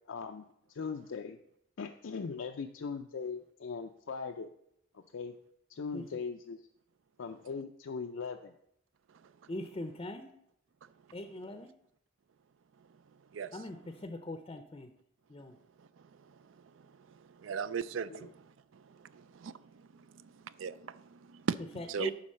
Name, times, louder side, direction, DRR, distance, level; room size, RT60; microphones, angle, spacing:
voice 1, 0.1-1.4 1.8-4.5 4.9-5.3 5.7-6.7 7.2-8.5 18.1-18.3, left 5 dB, 80° left, 0.5 m, -40 dB
voice 2, 9.5-10.3 11.1-11.7 13.5-14.9 15.3-15.6 21.7-22.1, left 1 dB, 30° left, 0.5 m, -41 dB
voice 3, 17.4-18.3 18.7-18.8 19.1-19.5 20.2-21.6 21.9-22.1, right 6 dB, 80° right, 0.4 m, -37 dB
9.8 x 4.0 x 6.3 m
head